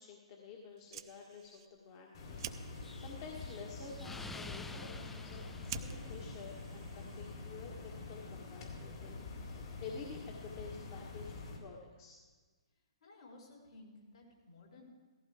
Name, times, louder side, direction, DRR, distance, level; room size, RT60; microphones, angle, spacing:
voice 1, 0.0-11.3 11.6-12.2, left 5 dB, 40° left, -1 dB, 1.6 m, -50 dB
Fire, 0.7-7.6, right 11 dB, 45° right, 0.6 m, -52 dB
sound 1, 2.1-11.6, left 3 dB, 55° left, 3.8 m, -46 dB
Explosion, 2.8-6.7, left 3 dB, 5° left, 0.3 m, -50 dB
voice 2, 13.0-14.8, left 2 dB, 70° left, -3 dB, 5.1 m, -56 dB
17.0 x 15.0 x 3.6 m, 1.4 s
hypercardioid pair, 130°, 3 cm